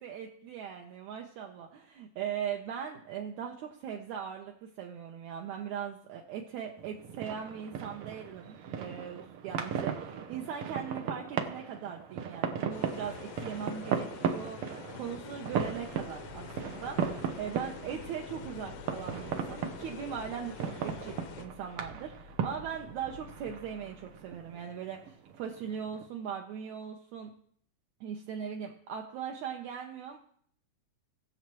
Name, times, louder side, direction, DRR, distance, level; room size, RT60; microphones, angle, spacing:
voice 1, 0.0-27.3 28.0-30.2, right 8 dB, 75° right, 1 dB, 2.0 m, -40 dB
sound 1, 6.8-26.1, right 7 dB, 90° right, 1.2 m, -37 dB
sound 2, 12.7-21.5, left 8 dB, 75° left, 1.6 m, -47 dB
sound 3, 15.5-24.6, left 2 dB, 50° right, 1.5 m, -53 dB
20.0 x 7.3 x 3.0 m, 0.63 s
omnidirectional pair, 3.7 m